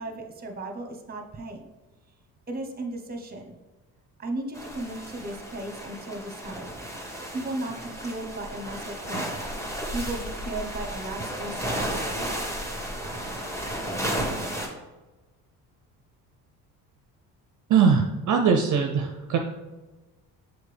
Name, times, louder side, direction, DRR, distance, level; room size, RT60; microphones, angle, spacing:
voice 1, 0.0-1.6 2.5-3.6 4.2-6.7 7.3-9.3 9.9-12.3, right 2 dB, 25° right, 4 dB, 1.1 m, -35 dB
sound 1, 4.5-14.7, equal, 5° left, 1.6 m, -33 dB
voice 2, 17.7-19.4, right 6 dB, 50° right, 3 dB, 0.7 m, -21 dB
6.5 x 4.3 x 3.4 m, 1.1 s
supercardioid pair, 75°, 40 cm